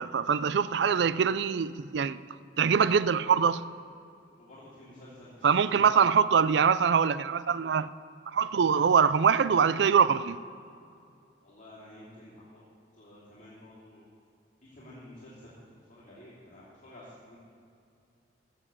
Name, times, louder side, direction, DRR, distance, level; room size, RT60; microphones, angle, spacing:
voice 1, 0.0-2.2 2.6-3.6 5.4-7.9 8.3-10.4, right 6 dB, 70° right, 0.4 m, -24 dB
voice 2, 4.4-6.1 11.4-12.6 12.9-14.0 14.6-17.4, left 1 dB, 40° left, 2.8 m, -50 dB
15.5 x 6.9 x 7.3 m
head